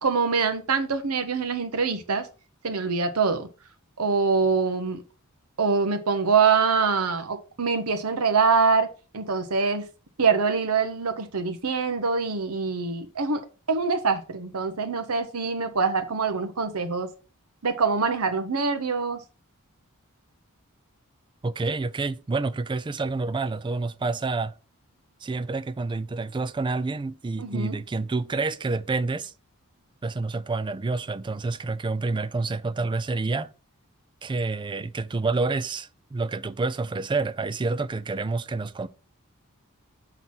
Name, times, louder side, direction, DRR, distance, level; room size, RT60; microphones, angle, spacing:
voice 1, 0.0-2.3 2.6-3.5 4.0-5.0 5.6-8.9 9.1-9.9 10.2-13.4 13.7-17.1 17.6-19.2 27.4-27.8, right 5 dB, 80° right, 1.0 m, -24 dB
voice 2, 21.4-24.5 25.2-29.3 30.0-33.5 34.2-38.9, right 3 dB, 20° right, 0.4 m, -28 dB
5.9 x 4.0 x 6.0 m
head